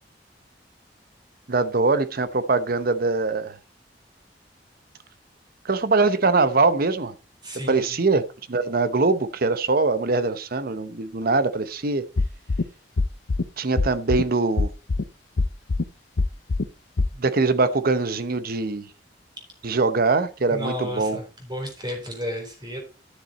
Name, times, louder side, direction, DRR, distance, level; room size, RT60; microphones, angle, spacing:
voice 1, 1.5-3.6 5.6-7.1 7.7-8.2 8.5-12.1 13.6-14.7 17.2-18.9 19.6-21.2, right 3 dB, 55° right, 0.9 m, -22 dB
voice 2, 7.4-8.0 20.5-22.8, equal, 25° right, 4.0 m, -32 dB
sound 1, 12.2-12.6 13.0-13.4 13.8-14.2 14.6-15.0 15.4-15.8 16.2-16.6 17.0-17.1, left 3 dB, 80° left, 0.6 m, -22 dB
11.0 x 6.9 x 4.2 m
head